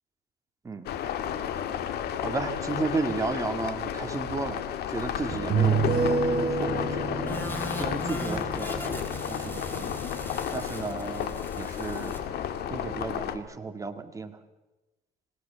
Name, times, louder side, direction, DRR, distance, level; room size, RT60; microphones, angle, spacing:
sound 1, 0.9-13.4, left 9 dB, 70° left, 1.9 m, -32 dB
voice 1, 2.2-4.6 4.9-7.4 7.8-10.0 10.5-12.2 12.7-14.4, right 4 dB, 20° right, 5 dB, 2.2 m, -34 dB
sound 2, 4.2-4.3 5.3-10.5, right 4 dB, 65° right, 4.0 m, -29 dB
sound 3, 7.3-12.2, left 1 dB, 10° left, 4.6 m, -40 dB
27.0 x 18.0 x 7.1 m, 1.1 s
cardioid pair, 110°, 17 cm